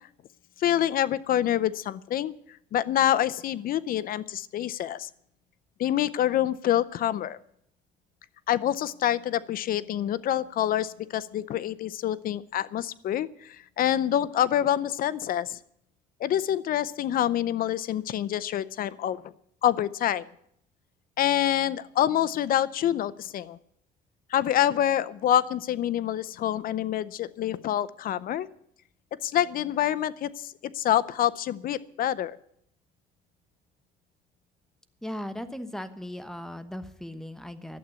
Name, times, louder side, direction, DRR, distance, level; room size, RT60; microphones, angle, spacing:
voice 1, 0.6-2.3 2.7-5.1 5.8-7.4 8.5-15.6 16.2-19.2 19.6-20.2 21.2-23.6 24.3-28.5 29.2-32.4, left 11 dB, 60° left, 17 dB, 0.6 m, -26 dB
voice 2, 35.0-37.8, left 1 dB, 5° left, 10 dB, 1.1 m, -37 dB
11.5 x 8.2 x 9.9 m, 0.72 s
cardioid pair, 110°, 17 cm